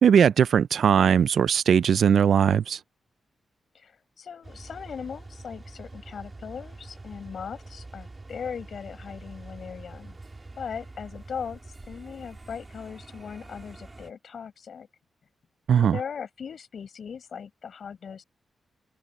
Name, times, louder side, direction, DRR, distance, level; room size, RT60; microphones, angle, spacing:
voice 1, 0.0-2.8 15.7-16.0, right 8 dB, 70° right, 0.4 m, -19 dB
voice 2, 3.7-10.2 10.6-11.6 11.9-14.9 15.7-18.2, left 6 dB, 55° left, 5.1 m, -39 dB
sound 1, 4.4-14.1, right 2 dB, 20° right, 2.7 m, -45 dB
wide cardioid pair, 145°, 0 cm